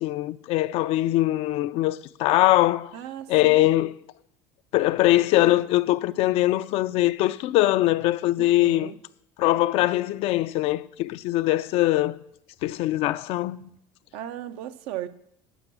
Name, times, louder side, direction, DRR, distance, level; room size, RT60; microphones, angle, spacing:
voice 1, 0.0-2.9 3.3-4.0 4.7-8.9 9.4-12.2 12.6-13.7, left 16 dB, 65° left, 0.4 m, -22 dB
voice 2, 2.9-3.5 8.4-9.0 14.1-15.1, right 12 dB, 75° right, 0.6 m, -36 dB
12.0 x 5.3 x 6.1 m
supercardioid pair, 90°, 11 cm